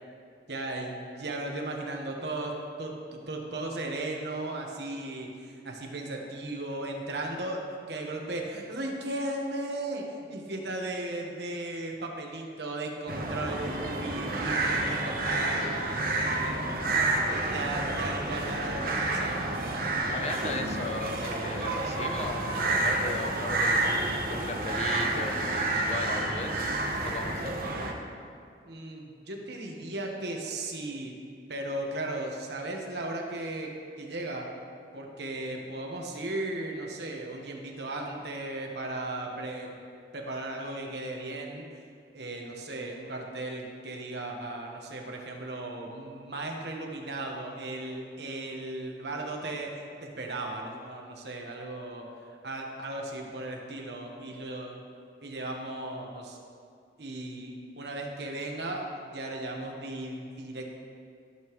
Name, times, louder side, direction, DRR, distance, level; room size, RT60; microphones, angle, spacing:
voice 1, 0.5-15.7 16.4-16.7 17.3-19.4 28.6-31.1 31.5-34.5 34.9-39.7 40.1-41.7 42.1-49.7 50.0-52.1 52.4-54.8 55.2-56.4 57.0-60.7, right 2 dB, 70° right, 1 dB, 1.3 m, -36 dB
sound 1, 13.1-27.9, right 2 dB, 50° right, 1.0 m, -29 dB
voice 2, 20.1-26.6 27.0-27.5, left 3 dB, 35° left, 5 dB, 0.6 m, -37 dB
14.5 x 7.0 x 3.1 m, 2.3 s
head